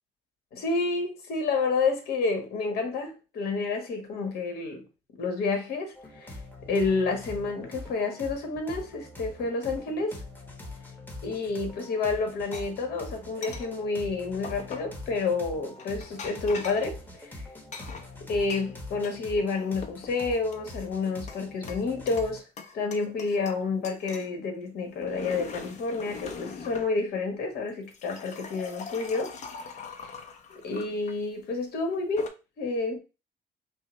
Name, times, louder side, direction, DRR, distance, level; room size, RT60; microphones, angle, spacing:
voice 1, 0.5-4.8 5.2-6.4 6.7-10.2 11.2-17.5 18.3-22.4 22.7-29.3 30.6-33.0, left 3 dB, 70° left, 1.4 m, -29 dB
sound 1, 5.9-22.4, left 2 dB, 10° left, 1.1 m, -43 dB
sound 2, 12.5-12.6 13.4-13.7 14.4-15.0 15.8-16.9 17.7-19.2 19.5-20.1 20.5-21.4 21.7-22.3 22.6-23.6 23.8-24.3 24.9-26.9 27.7-31.2 31.9-32.3, left 5 dB, 45° left, 0.7 m, -41 dB
5.4 x 2.1 x 3.2 m
cardioid pair, 110°, 17 cm